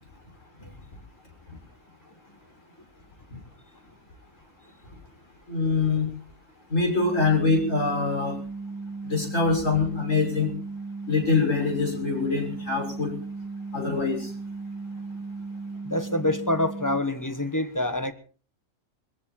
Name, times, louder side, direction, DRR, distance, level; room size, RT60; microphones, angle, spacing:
voice 1, 5.5-6.1 6.7-8.3 9.0-10.5 11.1-13.1 13.7-14.3, left 4 dB, 65° left, 6.5 m, -24 dB
sound 1, 6.9-17.0, right 3 dB, 90° left, 8.0 m, -36 dB
voice 2, 15.8-18.1, left 1 dB, 15° left, 1.1 m, -26 dB
22.5 x 15.0 x 4.2 m
omnidirectional pair, 1.4 m